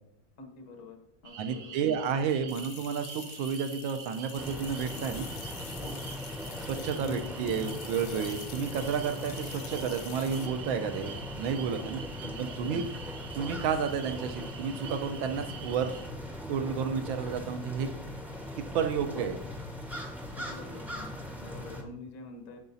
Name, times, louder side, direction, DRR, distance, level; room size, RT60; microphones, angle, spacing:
voice 1, 0.4-1.0 1.2-1.8 5.8-6.0 6.8-7.4 12.1-12.5 20.3-22.6, left 2 dB, 50° left, 4 dB, 1.0 m, -46 dB
sound 1, 1.2-16.1, right 7 dB, 55° right, 0.9 m, -46 dB
voice 2, 1.4-5.3 6.6-12.0 12.4-12.8 13.3-15.9 16.5-17.9 18.7-19.4, right 6 dB, 75° right, 8 dB, 1.4 m, -31 dB
sound 2, 2.5-10.5, left 10 dB, 75° left, 1.3 m, -47 dB
sound 3, 4.4-21.8, left 1 dB, ahead, 0.5 m, -40 dB
13.5 x 4.8 x 2.7 m, 0.80 s
omnidirectional pair, 2.3 m